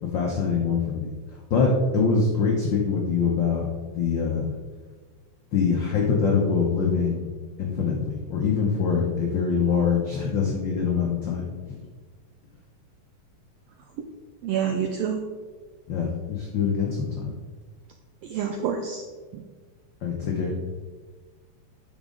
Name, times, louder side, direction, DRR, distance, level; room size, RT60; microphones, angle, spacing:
voice 1, 0.0-1.1 1.5-3.7 3.9-4.5 5.5-7.3 7.6-11.8 15.9-17.3 20.0-20.5, left 5 dB, 80° left, -1 dB, 1.0 m, -24 dB
voice 2, 14.4-15.3 18.2-19.0 19.3-19.4, right 7 dB, 85° right, 5 dB, 1.4 m, -27 dB
9.2 x 6.2 x 3.7 m, 1.4 s
omnidirectional pair, 3.5 m